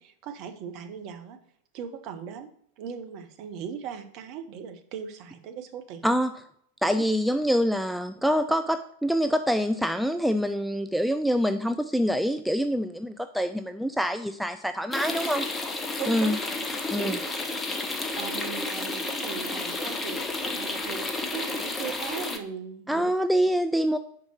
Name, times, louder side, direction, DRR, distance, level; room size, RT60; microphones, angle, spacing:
voice 1, 0.0-1.4 1.7-2.5 2.8-6.1 6.9-7.0 16.0-16.4 17.0-17.2 18.2-23.1, right 7 dB, 40° right, 6 dB, 0.9 m, -38 dB
voice 2, 6.0-6.4 6.8-15.5 16.1-16.4 16.9-17.2 22.9-24.0, equal, ahead, 9 dB, 0.3 m, -25 dB
sound 1, 14.9-22.4, left 2 dB, 15° left, 0.8 m, -31 dB
5.2 x 4.8 x 6.2 m, 0.67 s
figure-of-eight pair, 90°, 0 cm